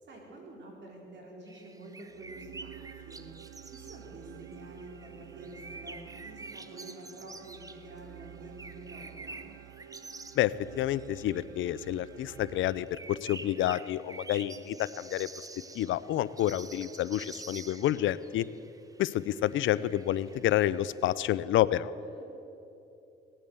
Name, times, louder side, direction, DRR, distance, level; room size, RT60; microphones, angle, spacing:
voice 1, 0.0-3.2 3.6-9.4 22.0-22.2, right 1 dB, 60° right, -1 dB, 4.2 m, -48 dB
sound 1, 1.5-21.2, right 3 dB, 15° right, 0.7 m, -49 dB
sound 2, 2.1-13.4, right 12 dB, 80° right, 0.6 m, -50 dB
voice 2, 10.4-15.3 15.7-18.5 19.0-21.9, left 13 dB, 75° left, 17 dB, 0.5 m, -29 dB
18.0 x 9.0 x 8.1 m, 3.0 s
cardioid pair, 90°, 20 cm